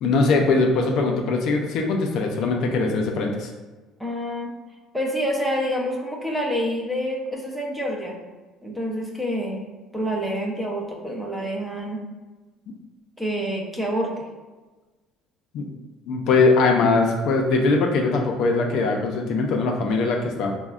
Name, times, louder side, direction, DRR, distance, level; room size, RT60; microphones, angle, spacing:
voice 1, 0.0-3.5 15.5-15.7 16.1-20.5, left 3 dB, 65° left, 2 dB, 0.4 m, -21 dB
voice 2, 4.0-4.5 4.9-8.2 8.6-9.6 9.9-12.0 13.2-14.3, equal, 5° right, -1 dB, 0.5 m, -27 dB
3.5 x 2.0 x 2.3 m, 1.2 s
cardioid pair, 130°, 0 cm